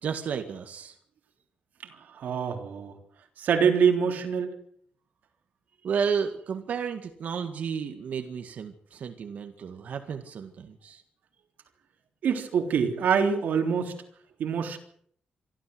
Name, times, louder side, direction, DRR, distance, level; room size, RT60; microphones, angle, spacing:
voice 1, 0.0-0.9 5.8-11.0, right 6 dB, 65° right, 5 dB, 2.0 m, -32 dB
voice 2, 1.8-2.9 3.4-4.6 12.2-13.9 14.4-14.8, right 6 dB, 80° right, 4 dB, 3.6 m, -25 dB
25.0 x 13.5 x 7.9 m, 0.63 s
wide cardioid pair, 135°, 3 cm